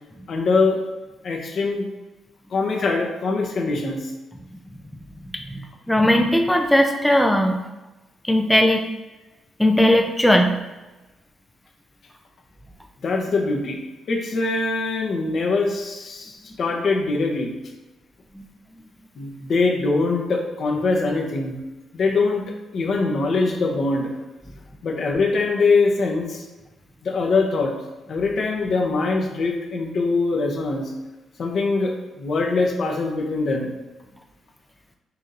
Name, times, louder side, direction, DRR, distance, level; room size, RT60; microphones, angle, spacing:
voice 1, 0.3-0.8 1.2-1.9 2.5-4.1 13.0-13.8 14.1-17.5 19.2-21.6 21.9-22.4 22.7-24.1 24.8-26.4 27.0-27.7 28.1-30.9 31.4-33.7, left 3 dB, 60° left, 1 dB, 0.8 m, -23 dB
voice 2, 5.9-7.6 8.3-8.9 9.6-10.6, left 1 dB, 5° left, 3 dB, 0.4 m, -17 dB
5.6 x 2.7 x 2.5 m, 1.1 s
cardioid pair, 75°, 0 cm